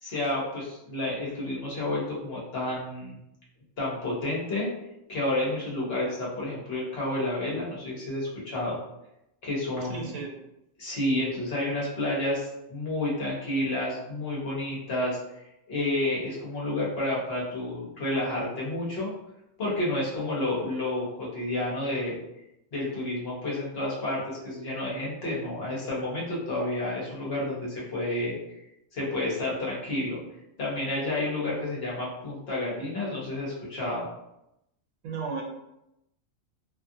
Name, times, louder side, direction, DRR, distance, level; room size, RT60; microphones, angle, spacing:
voice 1, 0.0-3.2 3.8-4.7 5.1-8.8 9.4-10.2 10.8-15.2 15.7-19.1 19.6-22.2 22.7-28.4 28.9-30.2 30.6-34.1, left 1 dB, 50° left, -5 dB, 1.0 m, -30 dB
voice 2, 9.9-10.3 35.0-35.4, right 5 dB, 90° right, 0 dB, 1.1 m, -33 dB
2.8 x 2.4 x 2.6 m, 0.86 s
omnidirectional pair, 1.4 m